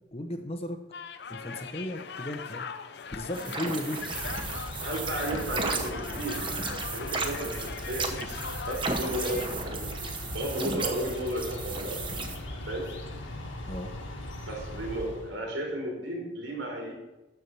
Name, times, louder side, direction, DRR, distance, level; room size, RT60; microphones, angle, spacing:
voice 1, 0.1-0.8 1.3-2.7 3.1-4.3 13.7-13.9, left 1 dB, 30° left, 6 dB, 0.9 m, -35 dB
sound 1, 0.9-9.5, left 6 dB, 60° left, 0.5 m, -40 dB
sound 2, 3.3-12.4, right 4 dB, 25° right, 1.0 m, -35 dB
sound 3, 4.0-15.4, left 1 dB, 80° left, 1.7 m, -39 dB
voice 2, 4.8-6.5 6.9-8.2 8.7-12.0 12.7-12.9 14.5-16.9, right 1 dB, 80° right, -1 dB, 3.9 m, -34 dB
12.5 x 4.8 x 7.0 m, 1.1 s
head